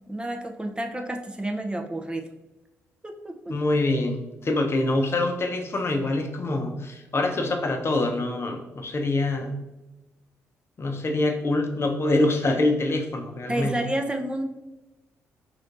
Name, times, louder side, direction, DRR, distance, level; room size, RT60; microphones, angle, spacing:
voice 1, 0.1-2.3 3.0-3.6 13.5-14.4, right 1 dB, 15° right, 3 dB, 0.5 m, -30 dB
voice 2, 3.5-9.5 10.8-13.8, left 2 dB, 35° left, 3 dB, 0.7 m, -25 dB
4.1 x 3.2 x 2.5 m, 1.0 s
hypercardioid pair, 45°, 7 cm